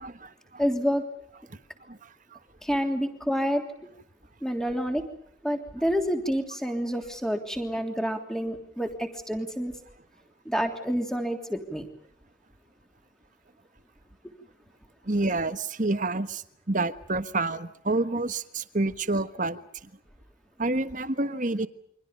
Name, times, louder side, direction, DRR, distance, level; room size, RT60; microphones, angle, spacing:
voice 1, 0.0-0.6 1.9-2.0 2.3-2.4 15.1-19.6 20.6-21.7, right 2 dB, 40° right, 11 dB, 1.3 m, -28 dB
voice 2, 0.6-1.0 2.6-3.6 4.4-5.0 5.4-9.7 10.4-11.9, equal, 5° left, 4 dB, 3.3 m, -28 dB
29.5 x 24.5 x 5.4 m, 0.72 s
head